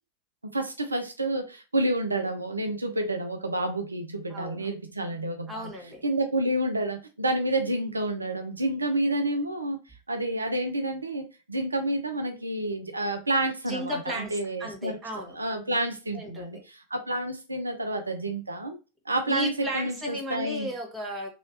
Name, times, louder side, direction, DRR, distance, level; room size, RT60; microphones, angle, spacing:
voice 1, 0.4-5.7 6.0-9.8 10.1-15.0 15.3-18.8 19.1-20.7, right 1 dB, 85° right, 0.5 m, -29 dB
voice 2, 4.3-4.7 5.5-6.0 13.7-15.4 15.7-15.8 16.1-16.6 19.3-21.3, equal, 20° right, 1.4 m, -35 dB
3.0 x 2.8 x 2.8 m
figure-of-eight pair, 85°, 0 cm